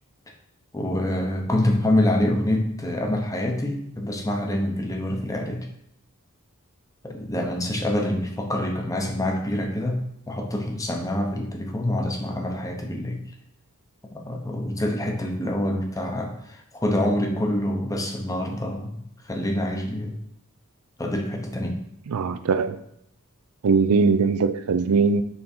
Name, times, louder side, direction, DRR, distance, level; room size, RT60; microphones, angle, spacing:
voice 1, 0.7-5.7 7.0-13.2 14.1-18.9 19.2-20.2 21.0-21.8, left 1 dB, 15° left, 0.8 m, -26 dB
voice 2, 22.1-22.8 23.6-25.2, right 4 dB, 80° right, 0.4 m, -21 dB
5.7 x 3.9 x 4.3 m
head